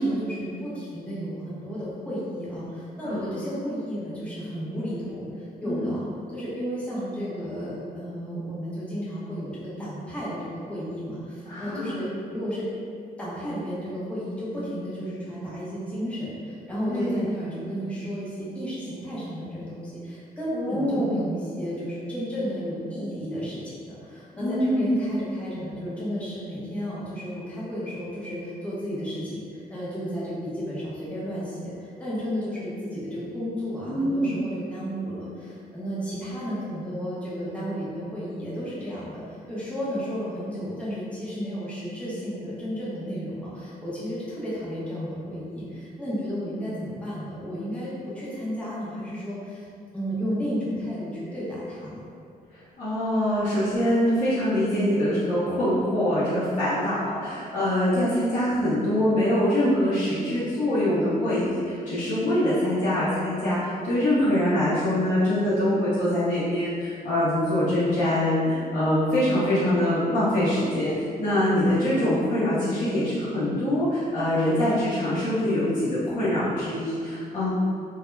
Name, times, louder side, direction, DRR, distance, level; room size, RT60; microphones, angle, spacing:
voice 1, 0.0-5.3 5.6-12.7 13.2-49.6 49.9-51.9, equal, 10° left, -9 dB, 0.7 m, -33 dB
voice 2, 3.0-3.4 5.6-5.9 11.4-12.0 16.9-17.3 20.5-21.2 24.3-25.0 33.8-34.5 52.8-77.5, left 1 dB, 50° left, -13 dB, 0.7 m, -24 dB
2.2 x 2.0 x 3.0 m, 2.3 s
wide cardioid pair, 155°, 16 cm